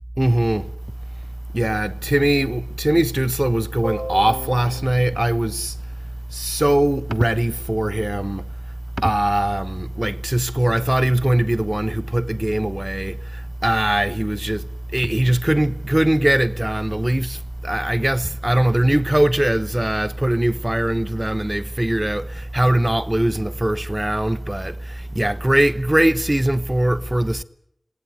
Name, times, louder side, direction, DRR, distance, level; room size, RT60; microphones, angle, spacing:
voice 1, 0.2-0.7 1.5-5.8 6.3-8.5 9.0-27.4, right 1 dB, 30° right, 1.0 m, -21 dB
27.0 x 21.0 x 8.9 m
wide cardioid pair, 45°, 0 cm